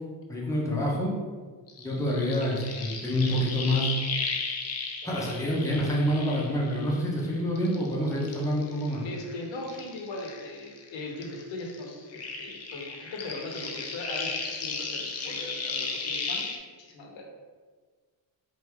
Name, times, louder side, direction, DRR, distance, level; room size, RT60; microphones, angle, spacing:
voice 1, 0.3-1.1 1.8-3.9 5.0-9.0, equal, 5° left, -5 dB, 0.8 m, -27 dB
sound 1, 1.7-7.2 7.6-10.9 11.2-16.6, left 4 dB, 35° left, 0.5 m, -35 dB
voice 2, 5.0-5.3 9.0-16.5 16.8-17.2, left 2 dB, 70° left, 0 dB, 1.0 m, -39 dB
4.6 x 2.7 x 3.4 m, 1.5 s
cardioid pair, 145°, 47 cm